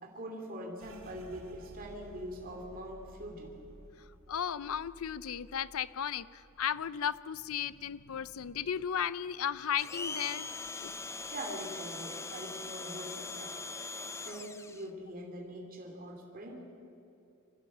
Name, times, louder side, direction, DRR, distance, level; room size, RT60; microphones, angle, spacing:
voice 1, 0.0-3.6 11.3-13.5 14.1-16.6, right 1 dB, 40° right, 1 dB, 2.7 m, -43 dB
sound 1, 0.8-10.2 10.5-11.7 12.0-12.5 13.0-13.6, equal, 70° right, 2.3 m, -57 dB
voice 2, 4.3-10.5 10.8-10.9, left 8 dB, 85° left, 17 dB, 0.5 m, -35 dB
Domestic sounds home sounds, 9.8-14.9, left 3 dB, 15° left, 0.6 m, -41 dB
24.5 x 15.0 x 7.3 m, 2.7 s
head